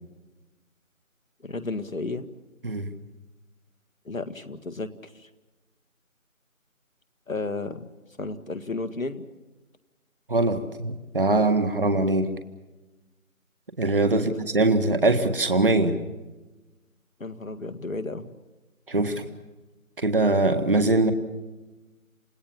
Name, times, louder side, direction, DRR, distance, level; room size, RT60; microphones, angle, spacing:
voice 1, 1.4-2.3 4.1-5.3 7.3-7.9 8.2-9.3 14.1-14.3 17.2-18.3, left 3 dB, 70° left, 9 dB, 2.0 m, -33 dB
voice 2, 10.3-12.3 13.8-16.0 18.9-19.2 20.0-21.1, right 2 dB, 40° right, 7 dB, 1.8 m, -22 dB
29.5 x 17.0 x 7.3 m, 1.1 s
figure-of-eight pair, 170°, 42 cm